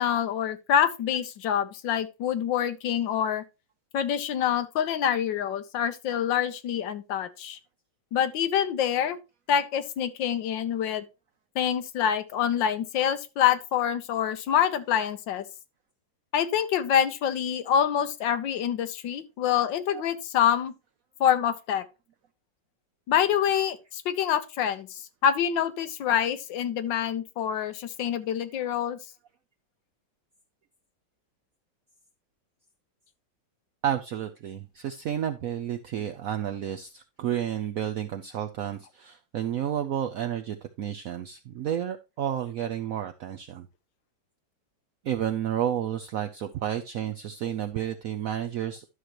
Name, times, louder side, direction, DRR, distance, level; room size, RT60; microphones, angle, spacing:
voice 1, 0.0-3.4 3.9-7.6 8.1-9.2 9.5-11.0 11.5-15.4 16.3-20.7 21.2-21.8 23.1-29.0, left 9 dB, 75° left, 1.5 m, -26 dB
voice 2, 33.8-43.7 45.0-48.9, right 10 dB, 75° right, 0.8 m, -31 dB
11.5 x 6.5 x 3.0 m
omnidirectional pair, 2.1 m